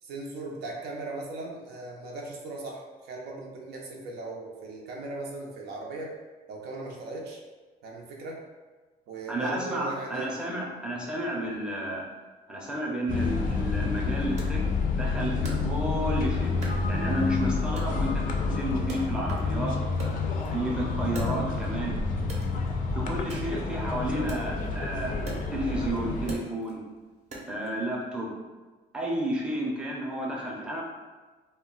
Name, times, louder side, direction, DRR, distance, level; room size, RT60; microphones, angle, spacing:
voice 1, 0.0-6.1 6.5-7.4 7.8-8.4 9.1-10.4, right 3 dB, 75° right, -1 dB, 0.6 m, -38 dB
voice 2, 9.3-12.0 12.5-14.6 14.9-16.5 16.9-18.2 18.5-19.8 20.3-21.9 22.9-25.2 25.5-26.8 27.5-28.3 28.9-30.8, right 1 dB, 5° right, -4 dB, 0.6 m, -31 dB
sound 1, 13.1-26.3, left 4 dB, 50° left, 0.4 m, -29 dB
Wood, 14.4-16.2 16.6-17.4 17.8-19.6 19.9-21.8 22.2-27.7, right 2 dB, 40° right, 0.7 m, -44 dB
2.2 x 2.1 x 3.7 m, 1.3 s
cardioid pair, 110°, 17 cm